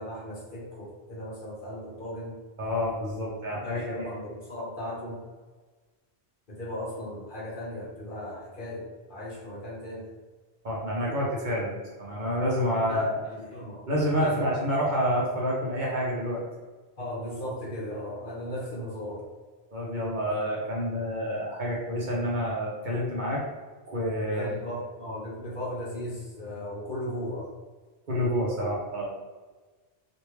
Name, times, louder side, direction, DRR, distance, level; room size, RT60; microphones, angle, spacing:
voice 1, 0.0-2.4 3.5-5.2 6.5-10.0 12.9-13.8 14.2-14.5 17.0-19.2 24.3-27.5, left 1 dB, 50° left, -6 dB, 1.2 m, -36 dB
voice 2, 2.6-4.1 10.6-13.2 13.9-16.4 19.7-23.4 23.9-24.5 28.1-29.1, equal, 50° right, -5 dB, 0.8 m, -28 dB
3.2 x 2.6 x 3.0 m, 1.3 s
omnidirectional pair, 1.1 m